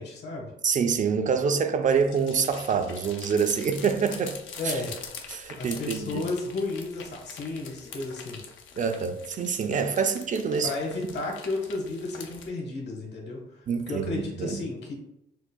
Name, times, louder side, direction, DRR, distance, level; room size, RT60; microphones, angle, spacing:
voice 1, 0.0-0.5 4.6-5.0 5.6-8.4 10.6-14.9, left 2 dB, 60° left, 1.3 m, -33 dB
voice 2, 0.6-4.4 4.6-4.7 5.3-6.2 8.8-10.7 13.7-14.6, right 6 dB, 40° right, 0.4 m, -26 dB
sound 1, 1.8-12.5, left 6 dB, 80° left, 0.6 m, -44 dB
6.1 x 2.2 x 2.2 m
cardioid pair, 90°, 20 cm